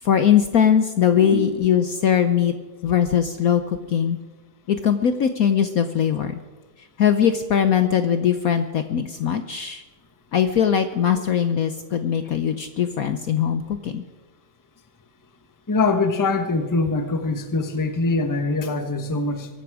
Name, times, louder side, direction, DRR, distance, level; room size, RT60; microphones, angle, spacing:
voice 1, 0.0-2.5 2.8-4.2 4.7-6.4 7.0-9.8 10.3-14.0, left 8 dB, 60° left, 9 dB, 1.0 m, -20 dB
voice 2, 15.7-19.5, left 3 dB, 15° left, 7 dB, 0.8 m, -23 dB
23.0 x 12.0 x 4.8 m, 1.3 s
omnidirectional pair, 2.0 m